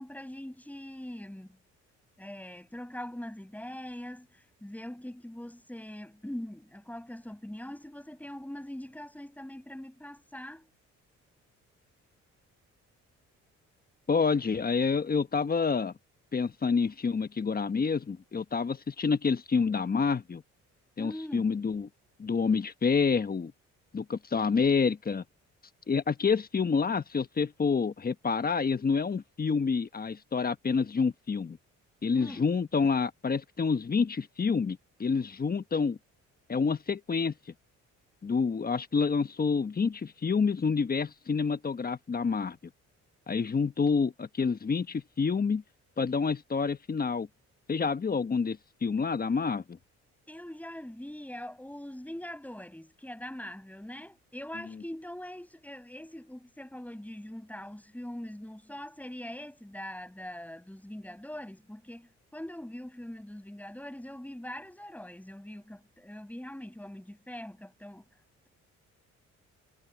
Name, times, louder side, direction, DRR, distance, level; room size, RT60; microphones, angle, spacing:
voice 1, 0.0-1.6 2.2-10.7 21.0-21.5 32.1-32.5 50.3-68.1, left 1 dB, 5° left, 7.6 m, -42 dB
voice 2, 14.1-15.9 16.3-20.4 21.0-21.9 22.2-23.5 23.9-25.2 25.9-31.6 32.0-36.0 36.5-37.3 38.2-42.6 43.3-45.6 46.0-47.3 47.7-49.6, left 5 dB, 30° left, 1.2 m, -28 dB
cardioid pair, 90°, 30 cm